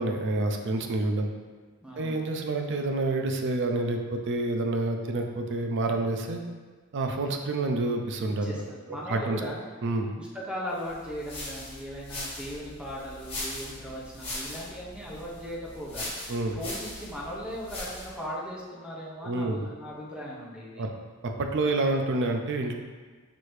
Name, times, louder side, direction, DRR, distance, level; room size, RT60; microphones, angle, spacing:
voice 1, 0.0-1.3 2.0-6.4 6.9-8.6 8.9-9.4 9.8-10.1 16.3-16.6 19.2-19.6 20.8-20.9 21.2-22.7, right 2 dB, 55° right, 4 dB, 0.4 m, -28 dB
voice 2, 1.8-2.2 8.4-9.6 10.2-20.9, equal, 5° right, -6 dB, 0.7 m, -38 dB
sound 1, 10.9-18.2, left 1 dB, 25° left, 1.5 m, -40 dB
6.0 x 2.7 x 3.2 m, 1.4 s
head